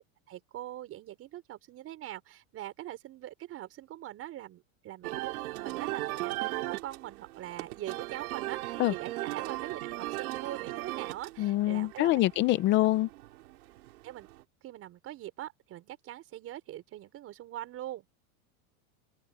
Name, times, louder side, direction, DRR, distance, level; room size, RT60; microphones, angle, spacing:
voice 1, 0.3-12.3 14.0-14.3 14.6-18.0, right 13 dB, 30° right, 5.0 m, -43 dB
sound 1, 5.0-14.4, right 18 dB, 80° right, 3.8 m, -38 dB
voice 2, 11.4-13.1, left 16 dB, 25° left, 0.5 m, -25 dB
supercardioid pair, 160°, 43 cm